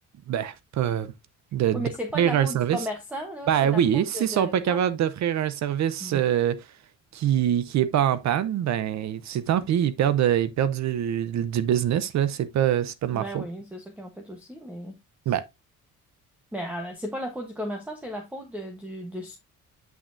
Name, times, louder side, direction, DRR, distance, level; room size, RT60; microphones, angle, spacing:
voice 1, 0.3-1.1 1.5-1.9 2.1-2.8 3.5-6.6 7.1-13.5 15.3-15.5, right 10 dB, 60° right, 0.7 m, -24 dB
voice 2, 1.7-4.8 6.0-6.2 13.1-15.0 15.3-15.4 16.5-19.3, equal, 5° right, 1.1 m, -35 dB
8.2 x 6.3 x 2.6 m
cardioid pair, 160°, 31 cm